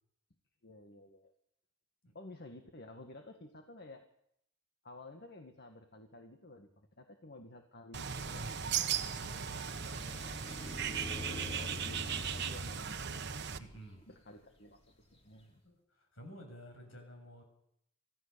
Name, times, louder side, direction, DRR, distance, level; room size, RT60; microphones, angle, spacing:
voice 1, 0.6-1.3 2.1-4.1 4.8-8.6 11.3-13.3 14.1-14.8 15.1-15.6, left 2 dB, 50° left, 5 dB, 1.8 m, -52 dB
Bird, 7.9-13.6, right 7 dB, 55° right, 1.2 m, -37 dB
sound 1, 8.1-15.3, left 2 dB, 30° left, 3.7 m, -48 dB
voice 2, 13.6-14.1 15.6-17.4, equal, 70° left, 4 dB, 7.1 m, -54 dB
26.5 x 16.0 x 6.9 m, 0.74 s
head